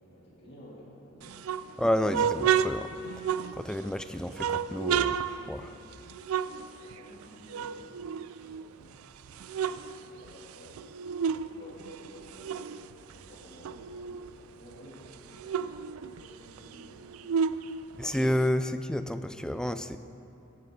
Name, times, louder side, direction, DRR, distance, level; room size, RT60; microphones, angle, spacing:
voice 1, 0.0-1.9 5.4-5.6 6.4-9.0 9.3-17.1 17.5-17.9, equal, 55° left, -6 dB, 2.5 m, -52 dB
sound 1, 1.2-3.9 4.3-7.2 7.5-8.8 9.2-11.5 11.8-14.4 14.7-14.8 15.1-18.5, right 7 dB, 90° right, 0.4 m, -31 dB
voice 2, 1.8-2.9 3.5-5.7 18.0-20.0, left 1 dB, 5° left, 10 dB, 0.3 m, -30 dB
17.5 x 9.1 x 3.7 m, 3.0 s
head